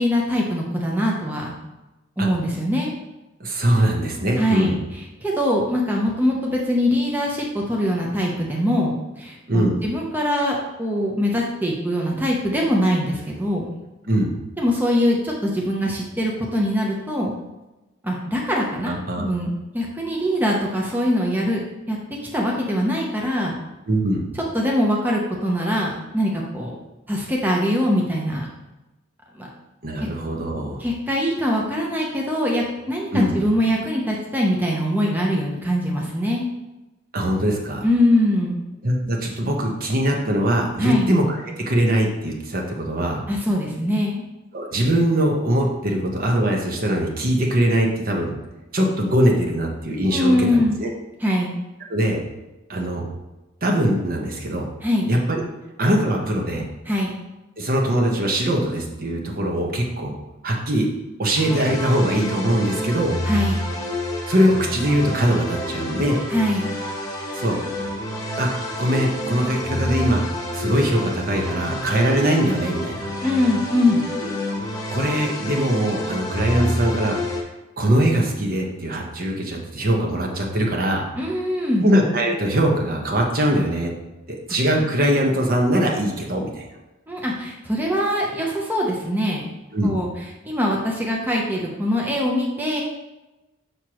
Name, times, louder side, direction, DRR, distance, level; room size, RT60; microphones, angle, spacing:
voice 1, 0.0-1.5 2.2-2.9 4.4-4.8 5.2-13.8 14.6-17.3 18.0-22.0 22.3-23.5 24.5-26.7 27.1-28.5 29.3-29.5 30.8-36.5 37.8-38.6 40.8-41.1 43.3-44.2 50.1-50.8 51.2-51.5 54.8-55.1 56.9-57.1 63.2-63.6 66.3-66.7 73.2-74.0 81.2-81.9 87.1-89.5 89.8-90.1 90.4-92.8, left 1 dB, 10° right, -2 dB, 0.8 m, -22 dB
voice 2, 3.4-4.8 9.5-9.8 14.1-14.3 18.9-19.3 23.9-24.2 29.8-30.8 33.1-33.4 37.1-37.8 38.8-41.2 41.6-43.2 44.5-48.3 48.7-50.9 51.9-52.2 52.7-53.0 53.6-54.7 55.1-55.4 55.8-56.6 57.6-60.1 60.4-60.9 61.2-63.2 64.3-66.2 67.3-67.6 68.4-70.3 70.5-73.1 74.2-74.3 74.9-77.2 77.8-81.0 81.8-83.9 84.3-86.7 89.7-89.9, right 1 dB, 45° right, 0 dB, 1.0 m, -21 dB
sound 1, 61.4-77.4, left 1 dB, 15° left, 1.0 m, -28 dB
6.6 x 6.1 x 3.0 m, 1.0 s
head